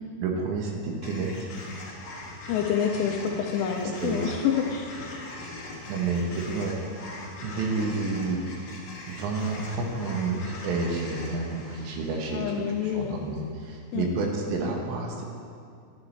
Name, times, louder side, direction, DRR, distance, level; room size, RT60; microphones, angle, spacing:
voice 1, 0.2-1.5 3.8-4.3 5.9-6.8 7.4-8.4 9.1-15.2, right 3 dB, 75° right, 0 dB, 3.1 m, -30 dB
sound 1, 1.0-13.3, left 2 dB, 60° left, 2.6 m, -41 dB
voice 2, 2.5-4.9 12.3-13.2 13.9-14.1, left 8 dB, 80° left, 2 dB, 2.6 m, -27 dB
11.5 x 10.5 x 3.2 m, 2.4 s
omnidirectional pair, 5.4 m